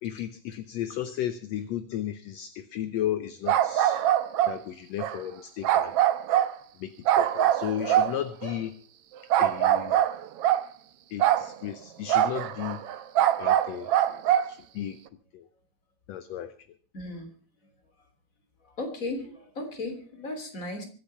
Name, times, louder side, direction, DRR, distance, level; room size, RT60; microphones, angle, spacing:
voice 1, 0.0-4.0 4.5-5.9 6.8-6.9 7.2-8.7 9.4-10.0 11.1-12.8 13.4-13.9 14.5-15.0 15.3-15.4 16.1-16.5, left 11 dB, 70° left, 12 dB, 1.9 m, -34 dB
sound 1, 3.5-4.6 5.0-5.2 5.6-6.6 7.1-8.6 9.3-10.7 11.2-11.5 12.1-14.5, right 11 dB, 65° right, 1.6 m, -23 dB
voice 2, 16.9-17.3 18.8-20.8, left 2 dB, 25° left, 5 dB, 3.4 m, -36 dB
24.0 x 8.7 x 5.6 m, 0.40 s
omnidirectional pair, 3.5 m